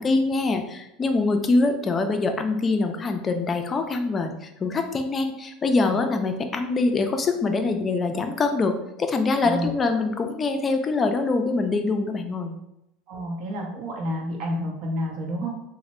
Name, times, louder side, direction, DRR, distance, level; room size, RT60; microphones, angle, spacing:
voice 1, 0.0-12.6, left 3 dB, 30° left, 6 dB, 0.4 m, -24 dB
voice 2, 9.4-9.8 13.1-15.6, equal, 60° right, 0 dB, 0.8 m, -29 dB
3.0 x 2.1 x 3.0 m, 0.84 s
supercardioid pair, 100°, 0 cm